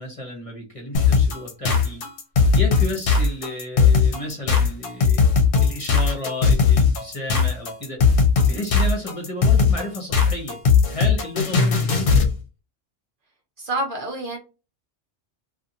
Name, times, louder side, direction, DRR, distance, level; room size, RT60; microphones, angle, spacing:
voice 1, 0.0-2.0 2.5-5.2 5.6-8.0 8.4-10.6 10.9-12.3, left 2 dB, 30° left, 0.9 m, -32 dB
sound 1, 0.9-12.3, left 5 dB, 60° left, 0.8 m, -18 dB
voice 2, 13.6-14.4, right 1 dB, 55° right, 0.8 m, -27 dB
2.6 x 2.5 x 2.6 m
omnidirectional pair, 1.2 m